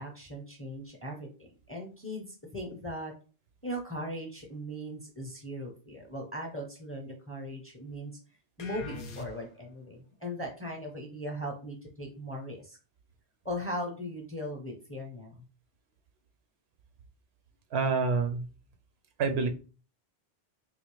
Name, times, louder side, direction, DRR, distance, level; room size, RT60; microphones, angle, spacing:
voice 1, 0.0-3.1 3.6-8.1 8.6-12.8 13.4-15.4, equal, 15° left, 1 dB, 0.6 m, -39 dB
sound 1, 8.6-9.8, left 2 dB, 60° left, 0.7 m, -43 dB
voice 2, 17.7-18.4 19.2-19.5, right 4 dB, 80° right, 7 dB, 0.8 m, -27 dB
3.5 x 2.5 x 3.1 m, 0.35 s
omnidirectional pair, 1.1 m